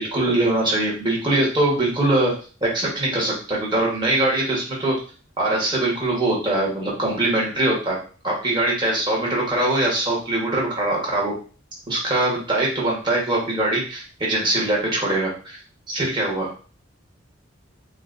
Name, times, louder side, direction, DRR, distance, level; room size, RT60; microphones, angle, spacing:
voice 1, 0.0-2.3 2.6-5.0 5.4-8.0 8.2-11.3 11.9-15.6 15.9-16.5, right 1 dB, 20° right, -4 dB, 1.3 m, -22 dB
5.8 x 2.3 x 2.6 m, 0.39 s
head